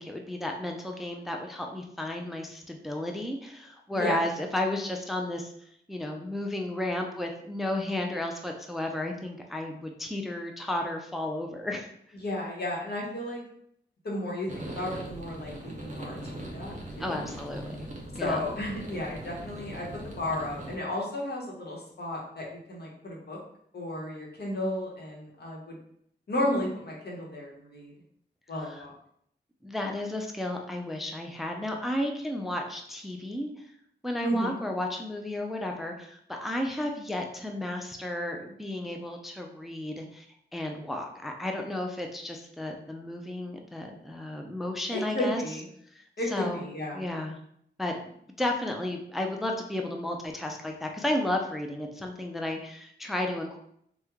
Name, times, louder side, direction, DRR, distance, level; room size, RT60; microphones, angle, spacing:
voice 1, 0.0-5.5 5.9-11.9 17.0-17.9 18.2-18.4 28.6-28.8 29.6-33.7 34.0-40.3 40.5-45.4 46.3-46.7 46.9-47.4 47.8-47.9 48.4-53.6, left 1 dB, ahead, 2 dB, 0.3 m, -33 dB
voice 2, 12.2-13.4 14.0-17.2 18.2-23.4 23.7-25.7 26.3-27.9 28.5-28.9 34.2-34.6 44.9-45.6 46.2-47.0, left 1 dB, 65° left, -3 dB, 0.9 m, -33 dB
sound 1, 14.5-20.8, right 1 dB, 45° right, 0.6 m, -40 dB
3.0 x 2.2 x 3.5 m, 0.70 s
wide cardioid pair, 75°, 18 cm